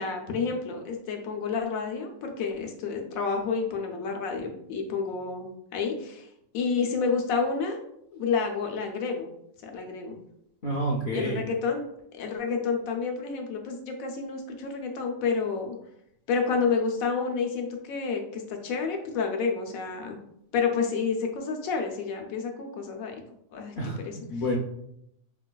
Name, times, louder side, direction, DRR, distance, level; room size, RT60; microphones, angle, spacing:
voice 1, 0.0-6.3 6.5-7.8 8.1-9.3 9.6-10.2 11.1-11.8 12.1-15.7 16.3-20.2 20.5-23.2 23.5-23.7, left 5 dB, 85° left, 3 dB, 1.1 m, -29 dB
voice 2, 10.6-11.4 23.8-24.6, equal, 60° left, -3 dB, 0.5 m, -29 dB
4.5 x 2.3 x 2.2 m, 0.75 s
omnidirectional pair, 1.4 m